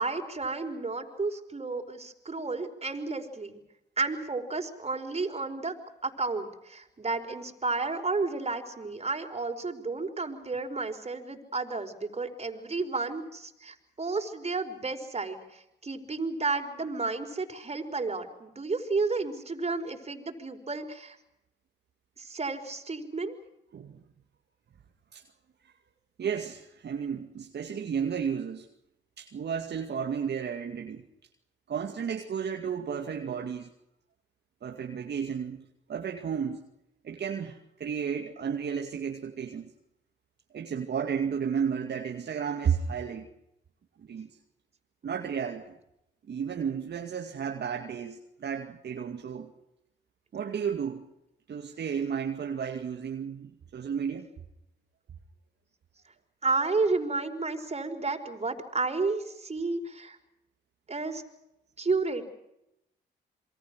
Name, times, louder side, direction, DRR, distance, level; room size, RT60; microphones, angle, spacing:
voice 1, 0.0-3.6 4.0-5.7 6.0-21.2 22.2-23.4 56.4-60.2 60.9-61.2 61.8-62.2, right 3 dB, 30° right, 5 dB, 5.1 m, -32 dB
voice 2, 26.2-28.7 29.2-31.0 31.7-33.7 34.6-36.7 37.0-39.7 40.5-43.3 44.0-44.3 45.0-45.7 46.3-49.5 50.3-51.0 51.5-54.3, right 7 dB, 60° right, 3 dB, 2.3 m, -33 dB
27.5 x 23.0 x 6.3 m, 0.84 s
supercardioid pair, 55°, 20 cm